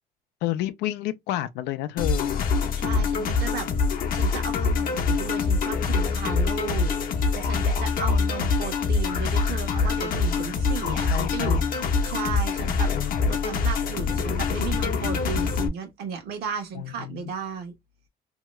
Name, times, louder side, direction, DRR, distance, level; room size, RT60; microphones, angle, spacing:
voice 1, 0.4-2.4 3.6-3.9 10.8-11.6 12.9-13.4 16.7-17.3, left 14 dB, 90° left, 0.4 m, -31 dB
sound 1, 2.0-15.7, left 4 dB, 60° left, 0.7 m, -25 dB
voice 2, 2.7-3.7 4.1-6.9 7.3-11.6 12.0-12.9 13.3-17.7, right 6 dB, 75° right, 1.1 m, -34 dB
2.8 x 2.3 x 3.0 m
cardioid pair, 110°, 17 cm